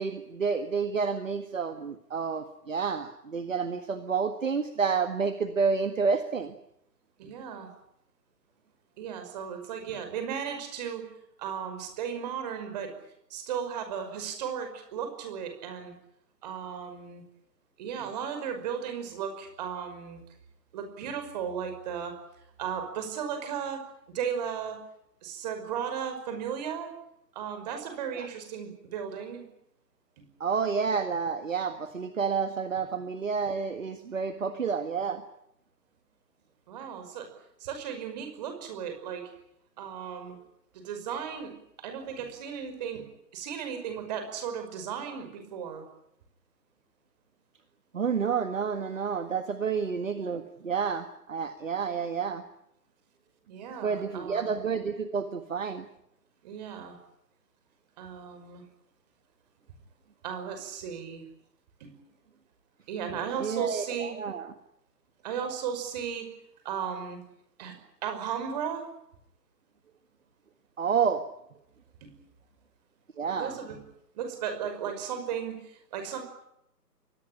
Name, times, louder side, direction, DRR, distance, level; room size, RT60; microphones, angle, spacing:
voice 1, 0.0-6.5 28.1-28.3 30.4-35.2 47.9-52.4 53.8-55.9 63.4-64.5 70.8-71.2 73.2-73.6, right 5 dB, 50° right, 9 dB, 1.8 m, -29 dB
voice 2, 7.2-7.7 9.0-11.1 11.4-12.9 13.3-15.9 16.4-17.2 17.8-20.2 20.7-22.1 22.6-23.8 24.1-24.8 25.2-26.9 27.3-29.5 30.2-30.3 36.7-37.3 37.6-39.3 39.8-40.4 40.7-41.5 41.8-43.1 43.3-45.8 53.5-54.5 56.4-57.0 58.0-58.6 60.2-61.2 61.8-61.9 62.9-64.2 65.2-66.3 66.6-67.2 67.6-67.7 68.0-68.9 72.0-72.1 73.3-73.8 74.1-76.3, right 7 dB, 25° right, 6 dB, 5.6 m, -35 dB
23.0 x 19.5 x 9.9 m, 0.78 s
figure-of-eight pair, 145°, 49 cm